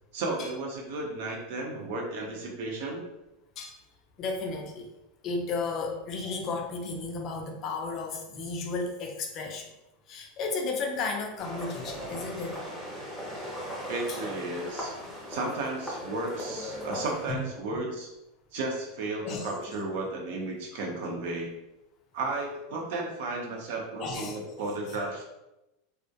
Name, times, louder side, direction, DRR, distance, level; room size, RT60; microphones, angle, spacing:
voice 1, 0.1-3.0 13.9-14.9 15.3-18.1 18.5-21.5 22.1-25.2, right 2 dB, 65° right, 0 dB, 0.6 m, -33 dB
voice 2, 4.2-4.9 5.2-9.7 10.1-12.6 14.1-14.2 17.3-17.4 19.2-19.5 20.7-20.8 24.0-24.4 24.9-25.0, left 3 dB, 35° left, 2 dB, 0.4 m, -33 dB
sound 1, 11.4-17.3, equal, 5° right, 0.6 m, -38 dB
2.3 x 2.1 x 2.7 m, 0.93 s
supercardioid pair, 145°, 0 cm